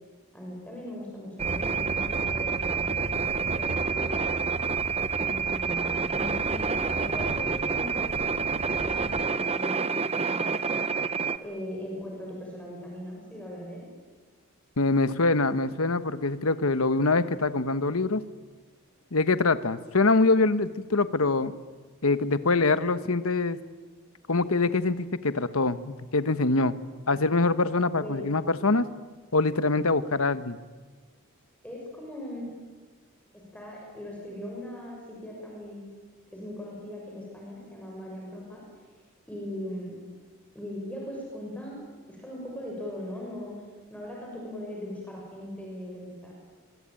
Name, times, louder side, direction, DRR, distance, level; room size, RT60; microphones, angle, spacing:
voice 1, 0.3-4.2 5.1-10.7 11.4-13.8 27.1-27.2 28.0-28.3 31.6-32.5 33.3-35.8 36.3-38.6 39.3-40.0 40.5-43.5 43.9-46.3, left 1 dB, 5° left, -2 dB, 6.5 m, -39 dB
sound 1, 1.4-11.4, right 5 dB, 25° right, 0.9 m, -28 dB
sound 2, 1.4-9.2, right 1 dB, 75° right, 2.1 m, -38 dB
voice 2, 14.8-18.2 19.1-21.5 22.0-23.6 24.3-26.7 27.1-28.8 29.3-30.6, left 3 dB, 70° left, 13 dB, 1.2 m, -24 dB
26.0 x 23.5 x 9.0 m, 1.4 s
head